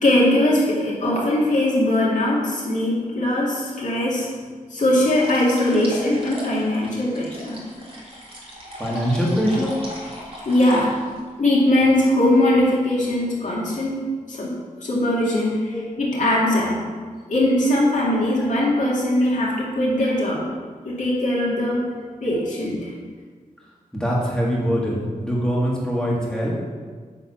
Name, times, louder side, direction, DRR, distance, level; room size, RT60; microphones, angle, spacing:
voice 1, 0.0-4.3 4.7-7.6 10.4-10.9 11.4-14.0 14.3-16.8 17.3-20.5 20.8-21.9 22.2-22.9, left 1 dB, 60° left, -4 dB, 2.2 m, -20 dB
sound 1, 5.1-11.3, equal, 40° right, 1.7 m, -36 dB
voice 2, 5.6-6.4 8.8-9.8 15.7-15.9 18.4-18.5 19.5-20.1 20.9-21.0 22.0-22.4 23.9-26.5, equal, 5° left, -5 dB, 1.8 m, -25 dB
8.7 x 4.0 x 6.0 m, 1.5 s
wide cardioid pair, 135°, 14 cm